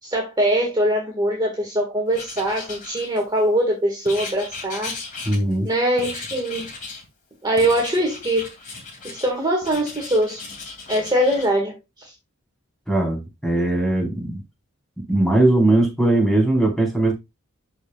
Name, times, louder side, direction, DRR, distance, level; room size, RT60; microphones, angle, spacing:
voice 1, 0.0-4.9 5.6-6.6 7.4-8.5 9.0-10.4 10.9-11.8, right 1 dB, 20° right, 1.8 m, -22 dB
Writing, 2.1-3.5 4.1-5.7 6.0-7.1 7.6-9.3 9.6-11.5, left 4 dB, 40° left, 2.6 m, -36 dB
voice 2, 5.2-5.7 12.9-14.4 15.0-17.1, right 2 dB, ahead, 4.1 m, -19 dB
12.0 x 5.1 x 2.4 m
head